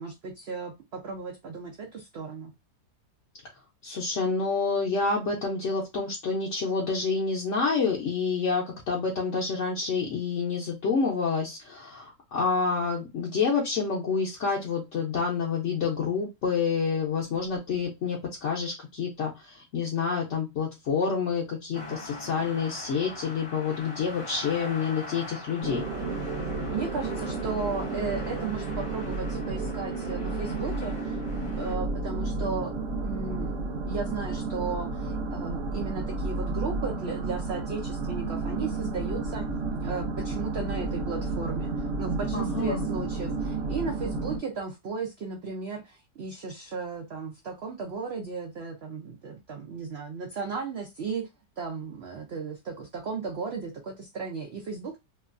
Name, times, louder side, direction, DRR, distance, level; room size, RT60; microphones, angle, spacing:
voice 1, 0.0-2.5 26.7-32.7 33.0-33.6 33.9-39.5 39.8-51.3 51.6-55.0, right 4 dB, 85° right, 0.5 m, -35 dB
voice 2, 3.8-25.8 42.3-42.8, left 5 dB, 60° left, 0.8 m, -28 dB
sound 1, 21.7-31.7, left 2 dB, 45° left, 0.4 m, -42 dB
sound 2, 25.6-44.4, right 3 dB, 60° right, 1.0 m, -32 dB
2.9 x 2.3 x 2.4 m
omnidirectional pair, 1.8 m